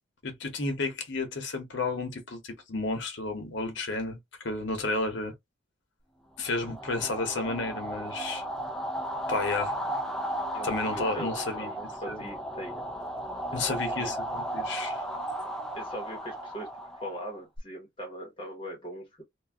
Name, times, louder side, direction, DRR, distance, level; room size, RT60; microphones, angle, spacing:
voice 1, 0.2-5.3 6.4-8.4 9.3-9.7 10.6-11.7 12.1-12.2 13.5-15.0, left 3 dB, 75° left, 0.8 m, -32 dB
sound 1, 6.5-17.6, right 1 dB, 5° left, 0.3 m, -35 dB
voice 2, 10.5-12.9 13.5-14.1 15.7-16.7 17.0-19.2, equal, 25° left, 0.9 m, -40 dB
2.4 x 2.2 x 3.3 m
head